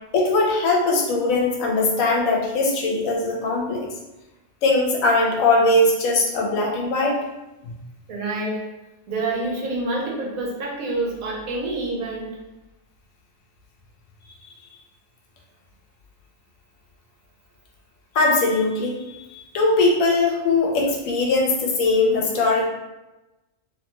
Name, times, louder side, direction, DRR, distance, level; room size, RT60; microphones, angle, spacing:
voice 1, 0.1-3.9 4.6-7.2 7.6-7.7 18.1-22.7, left 2 dB, 80° left, -1 dB, 1.0 m, -20 dB
voice 2, 8.1-8.6 9.1-12.4, right 2 dB, 85° right, -2 dB, 1.1 m, -27 dB
2.8 x 2.2 x 2.9 m, 1.0 s
omnidirectional pair, 1.4 m